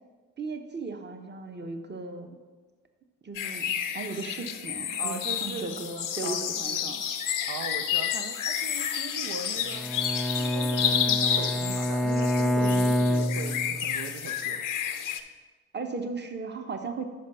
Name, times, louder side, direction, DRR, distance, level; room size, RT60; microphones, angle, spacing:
voice 1, 0.4-2.3 3.2-3.7 3.9-7.0 12.6-12.9 15.7-17.1, right 3 dB, 30° right, 6 dB, 0.9 m, -36 dB
sound 1, 3.3-15.2, left 9 dB, 65° left, 0.6 m, -30 dB
voice 2, 5.0-5.8 6.2-6.9 7.5-9.9 10.4-14.6, right 6 dB, 65° right, 6 dB, 0.5 m, -39 dB
Bowed string instrument, 9.7-14.1, equal, ahead, 0.3 m, -27 dB
5.2 x 5.1 x 5.5 m, 1.4 s
supercardioid pair, 40°, 34 cm